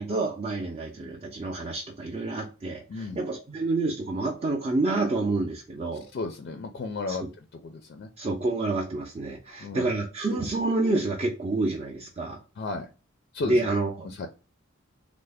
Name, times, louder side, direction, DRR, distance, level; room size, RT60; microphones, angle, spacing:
voice 1, 0.0-6.1 7.1-7.3 8.2-12.4 13.4-14.1, right 2 dB, 30° right, 0.5 m, -28 dB
voice 2, 6.1-7.2 7.6-8.1 9.5-9.9 12.6-12.9 13.3-13.6 14.0-14.3, left 3 dB, 50° left, 0.4 m, -33 dB
3.2 x 2.0 x 3.4 m
head